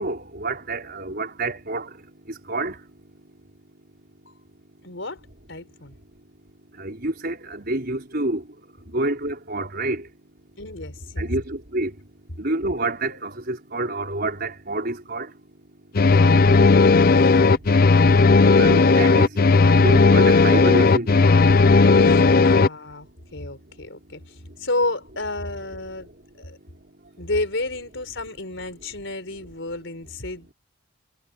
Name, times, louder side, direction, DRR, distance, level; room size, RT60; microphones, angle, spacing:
voice 1, 0.0-2.0 2.3-2.8 6.8-8.5 8.9-10.1 11.2-12.0 12.4-15.3 18.4-19.4 19.8-21.4, right 2 dB, 50° right, 5.1 m, -28 dB
voice 2, 4.8-5.2 5.5-6.0 10.6-11.3 17.0-17.6 22.0-26.1 26.4-26.6 27.2-30.5, left 2 dB, 65° left, 5.0 m, -31 dB
sound 1, 15.9-22.7, left 4 dB, 45° left, 0.5 m, -15 dB
head